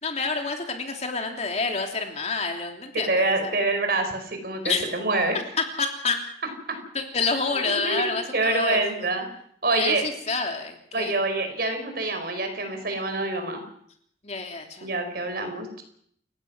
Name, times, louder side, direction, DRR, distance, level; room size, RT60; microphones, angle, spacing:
voice 1, 0.0-3.6 4.6-4.9 5.6-6.2 6.9-9.1 9.7-11.2 14.2-14.9, left 4 dB, 40° left, 3 dB, 3.1 m, -28 dB
voice 2, 3.1-5.4 6.7-6.8 7.6-9.3 9.6-10.1 10.9-13.6 14.8-15.8, right 2 dB, 60° right, 6 dB, 4.9 m, -26 dB
29.0 x 15.5 x 6.2 m, 0.65 s
head